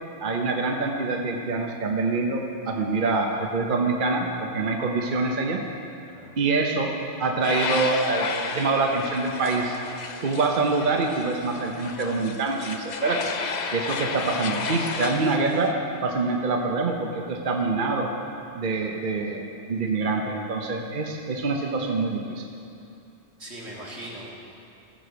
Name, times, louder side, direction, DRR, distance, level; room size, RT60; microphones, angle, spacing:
voice 1, 0.2-5.6 6.4-9.8 10.2-13.3 13.7-15.7 16.0-18.1 18.5-22.4, right 3 dB, 50° right, 2 dB, 0.9 m, -25 dB
sound 1, 7.4-15.7, left 5 dB, 50° left, 0.6 m, -32 dB
voice 2, 23.4-24.4, right 1 dB, 80° right, -4 dB, 2.4 m, -40 dB
14.5 x 6.1 x 6.8 m, 2.6 s
omnidirectional pair, 1.1 m